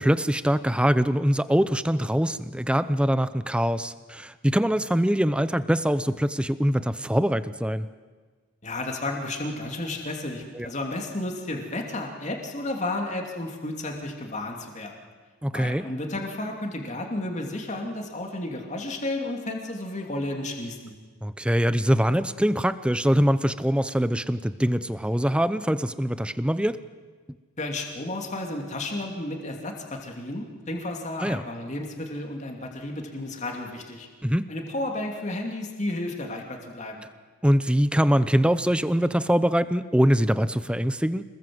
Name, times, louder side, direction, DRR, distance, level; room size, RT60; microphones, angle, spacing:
voice 1, 0.0-7.9 10.5-10.7 15.4-15.8 21.2-26.8 31.2-31.4 34.2-34.5 37.4-41.2, equal, 5° right, 14 dB, 0.6 m, -23 dB
voice 2, 8.6-14.9 15.5-20.9 27.6-34.1 34.5-37.0, left 2 dB, 35° left, 2 dB, 2.8 m, -32 dB
27.0 x 20.5 x 7.9 m, 1.4 s
head